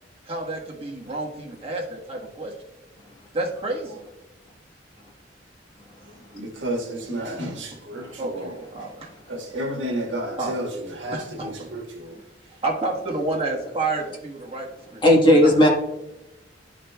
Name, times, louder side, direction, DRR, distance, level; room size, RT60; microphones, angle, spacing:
voice 1, 0.2-2.5 3.3-4.0 8.2-9.1 10.4-10.6 11.1-11.7 12.6-15.0 15.4-15.5, right 2 dB, 35° right, 1.4 m, -29 dB
voice 2, 6.3-8.5 9.3-10.7 11.0-12.1, right 1 dB, 85° right, 1.5 m, -31 dB
voice 3, 7.3-7.7 8.0-8.2 15.0-15.7, left 1 dB, 25° left, 1.4 m, -18 dB
12.0 x 4.9 x 2.3 m
head